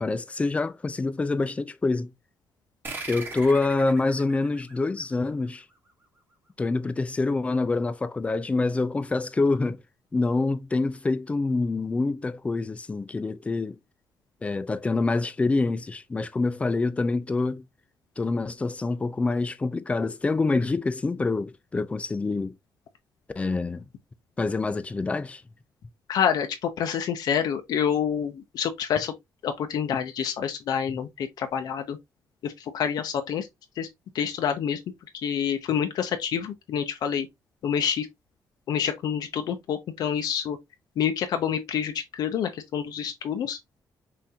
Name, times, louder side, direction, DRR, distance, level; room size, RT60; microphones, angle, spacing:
voice 1, 0.0-2.1 3.1-5.6 6.6-9.8 10.1-13.8 14.4-17.6 18.2-22.5 23.4-23.8 24.4-25.4, left 3 dB, 20° left, 0.4 m, -26 dB
sound 1, 2.8-5.9, right 3 dB, 30° right, 1.1 m, -40 dB
voice 2, 26.1-29.1 29.4-32.0 32.4-33.5 33.8-33.9 34.1-34.8 35.2-37.3 37.6-38.1 38.7-40.6 41.0-43.6, left 8 dB, 70° left, 0.6 m, -27 dB
5.6 x 2.6 x 2.7 m
cardioid pair, 145°, 7 cm